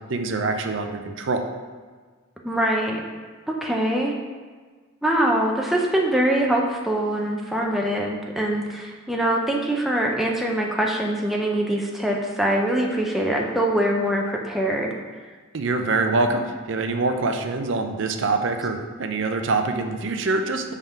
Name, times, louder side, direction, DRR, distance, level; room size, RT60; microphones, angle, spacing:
voice 1, 0.1-1.5 15.5-20.7, right 3 dB, 55° right, 6 dB, 0.5 m, -25 dB
voice 2, 2.4-3.0 3.5-4.1 5.0-14.9, right 1 dB, ahead, -1 dB, 0.5 m, -23 dB
5.6 x 3.5 x 5.5 m, 1.5 s
head